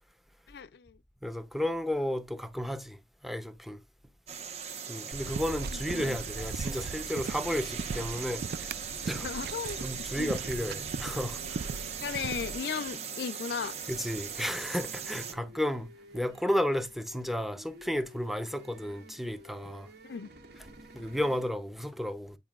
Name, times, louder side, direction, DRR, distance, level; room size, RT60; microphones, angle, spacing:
voice 1, 0.5-1.0 4.3-4.4 5.7-6.2 9.2-10.3 12.0-13.8 20.0-20.3, left 6 dB, 65° left, 0.4 m, -36 dB
voice 2, 1.2-3.0 3.2-3.8 4.9-8.7 9.1-9.3 9.8-11.6 13.9-15.9 16.1-19.9 20.9-22.4, equal, ahead, 0.6 m, -33 dB
sound 1, 4.3-15.3, right 7 dB, 40° right, 1.0 m, -39 dB
sound 2, 5.1-12.6, right 4 dB, 60° right, 0.4 m, -39 dB
sound 3, 9.8-21.5, right 1 dB, 75° right, 2.0 m, -53 dB
9.2 x 4.6 x 2.4 m
head